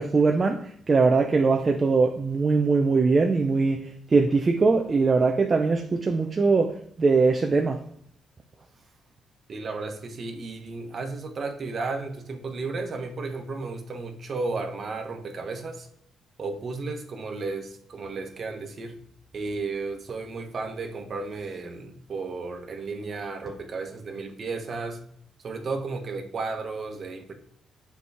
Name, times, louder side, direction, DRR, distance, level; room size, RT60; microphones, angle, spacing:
voice 1, 0.0-6.7 7.0-7.8, right 4 dB, 35° right, 0.6 m, -21 dB
voice 2, 9.5-15.9 16.4-19.0 19.3-25.0 25.4-27.3, right 3 dB, 50° right, 1.2 m, -33 dB
6.8 x 4.7 x 3.5 m
cardioid pair, 90°, 0 cm